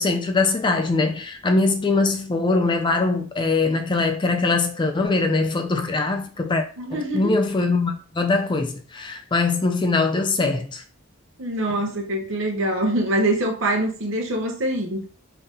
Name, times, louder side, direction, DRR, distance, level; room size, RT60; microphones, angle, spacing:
voice 1, 0.0-10.8, left 3 dB, 20° left, 0.4 m, -22 dB
voice 2, 6.8-7.3 11.4-15.1, right 1 dB, 65° right, 0.9 m, -24 dB
3.8 x 2.7 x 3.5 m
head